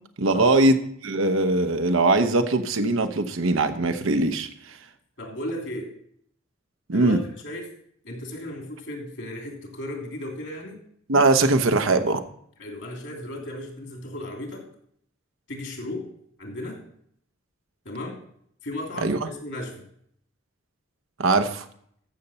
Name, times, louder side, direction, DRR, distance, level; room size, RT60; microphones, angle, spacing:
voice 1, 0.2-4.5 6.9-7.2 11.1-12.2 19.0-19.3 21.2-21.7, right 2 dB, 75° right, 9 dB, 0.9 m, -21 dB
voice 2, 5.2-5.9 6.9-7.7 8.0-10.8 12.6-14.7 15.5-16.1 16.4-16.8 17.8-18.2 18.6-19.9, left 1 dB, 65° left, 1 dB, 2.9 m, -35 dB
14.0 x 6.8 x 4.2 m, 0.66 s
head